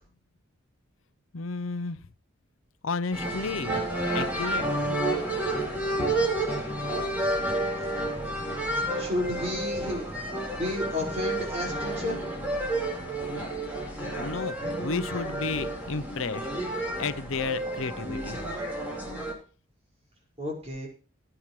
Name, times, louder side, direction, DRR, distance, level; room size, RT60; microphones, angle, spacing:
voice 1, 1.3-2.0 2.8-3.8 4.1-4.7 13.3-13.5 14.0-18.4, left 4 dB, 90° left, 13 dB, 0.7 m, -33 dB
sound 1, 3.1-19.3, right 1 dB, 10° right, 4.5 m, -30 dB
voice 2, 9.0-10.1 10.5-12.2 20.4-20.9, left 1 dB, 30° right, -2 dB, 5.4 m, -31 dB
20.0 x 9.0 x 3.2 m, 0.38 s
head